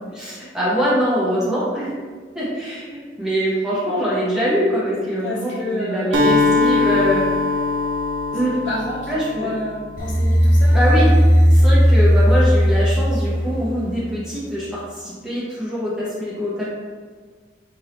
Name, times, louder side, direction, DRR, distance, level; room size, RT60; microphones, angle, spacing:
voice 1, 0.1-1.9 2.3-7.3 8.3-8.6 9.1-9.5 10.7-11.1 11.5-16.7, equal, 5° right, -9 dB, 1.1 m, -23 dB
voice 2, 5.2-6.2 6.5-6.6 8.5-11.0, left 1 dB, 75° left, -6 dB, 1.3 m, -29 dB
Acoustic guitar, 6.1-10.0, left 3 dB, 80° right, 0.6 m, -21 dB
sound 1, 10.0-14.0, equal, 45° left, 0.7 m, -15 dB
4.5 x 3.0 x 3.2 m, 1.5 s
head